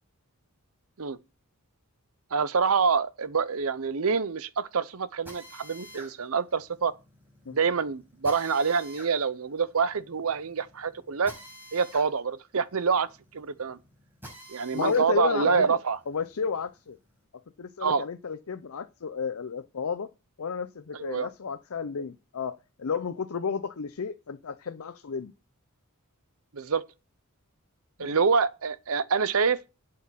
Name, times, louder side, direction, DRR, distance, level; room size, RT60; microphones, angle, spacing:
voice 1, 2.3-6.9 7.5-11.3 11.7-13.1 13.3-13.8 14.5-16.0 17.8-18.1 21.0-21.3 26.5-26.8 28.0-29.6, right 5 dB, 65° right, 0.7 m, -26 dB
Drill, 5.3-15.1 15.5-17.1, right 1 dB, 10° right, 5.4 m, -49 dB
voice 2, 14.7-15.8 16.1-17.0 17.6-20.1 20.4-25.3 28.0-28.1, left 6 dB, 65° left, 0.6 m, -32 dB
8.5 x 7.5 x 5.7 m
head